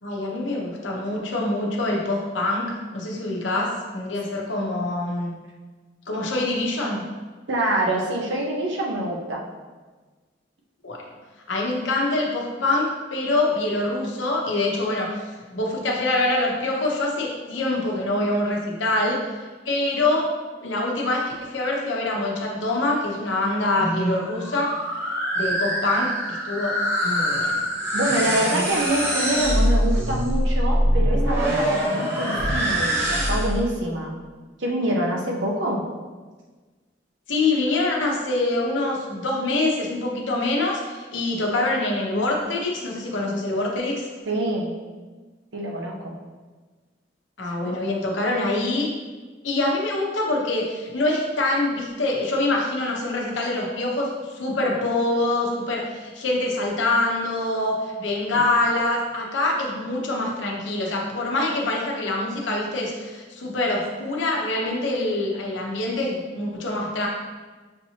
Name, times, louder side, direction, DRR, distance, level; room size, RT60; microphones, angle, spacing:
voice 1, 0.0-5.3 6.1-7.0 10.8-11.0 11.5-15.3 15.5-19.2 19.6-20.3 20.6-24.7 25.3-26.8 27.0-27.7 37.3-44.1 47.4-48.9 49.4-67.1, left 2 dB, 85° left, -2 dB, 0.9 m, -25 dB
voice 2, 7.5-9.4 27.9-34.1 34.6-35.8 44.3-44.7 45.5-46.1 47.4-47.7 58.3-58.5, right 1 dB, 85° right, -1 dB, 0.9 m, -26 dB
sound 1, 23.8-33.7, equal, 15° right, 1.0 m, -24 dB
6.5 x 2.9 x 2.8 m, 1.3 s
head